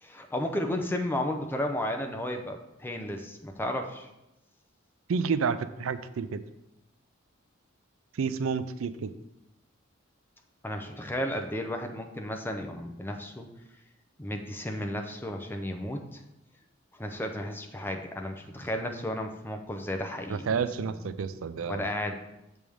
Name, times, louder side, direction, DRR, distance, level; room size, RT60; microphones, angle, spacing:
voice 1, 0.0-4.1 10.6-13.5 14.2-16.2 17.0-21.0 21.7-22.2, left 1 dB, 10° left, 4 dB, 0.7 m, -33 dB
voice 2, 5.1-6.4 8.2-9.1 20.3-21.9, right 5 dB, 90° right, 13 dB, 0.4 m, -30 dB
7.1 x 3.5 x 6.2 m, 0.91 s
head